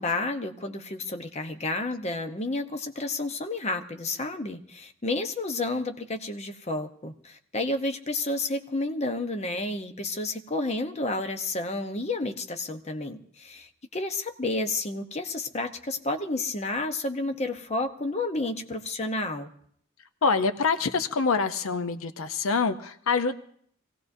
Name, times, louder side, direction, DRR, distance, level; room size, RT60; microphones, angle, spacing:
voice 1, 0.0-19.5, left 2 dB, 30° left, 7 dB, 0.8 m, -31 dB
voice 2, 20.2-23.4, left 4 dB, 75° left, 10 dB, 0.7 m, -25 dB
24.5 x 17.0 x 2.6 m, 0.63 s
head